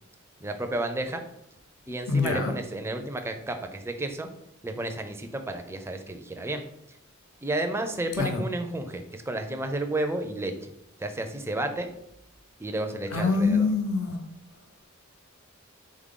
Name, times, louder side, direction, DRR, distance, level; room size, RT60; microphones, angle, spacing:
voice 1, 0.4-1.2 1.9-4.3 4.6-6.6 7.4-10.5 11.0-11.9 12.6-13.7, right 2 dB, 10° right, 5 dB, 0.4 m, -32 dB
voice 2, 2.1-2.5 8.2-8.4 13.1-14.2, left 4 dB, 85° left, 4 dB, 0.7 m, -24 dB
3.7 x 3.6 x 3.7 m, 0.75 s
head